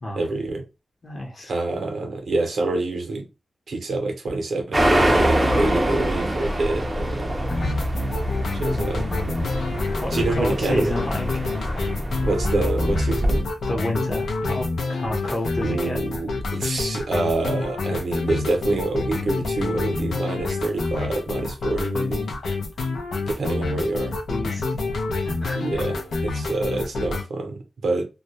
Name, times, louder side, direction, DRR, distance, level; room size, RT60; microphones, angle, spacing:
voice 1, 0.2-0.6 1.5-3.3 3.7-7.4 8.5-9.1 10.1-10.9 12.3-13.5 15.6-22.3 23.3-24.2 25.5-28.1, right 2 dB, 65° right, 0.6 m, -26 dB
voice 2, 1.0-1.5 10.0-11.5 13.7-16.0 24.3-24.6 25.2-25.9 26.4-26.5, left 1 dB, 40° left, 0.8 m, -30 dB
sound 1, 4.7-13.4, right 1 dB, 20° right, 0.4 m, -24 dB
sound 2, 7.5-27.2, left 3 dB, 75° left, 0.5 m, -28 dB
2.2 x 2.1 x 2.7 m
wide cardioid pair, 130°, 0 cm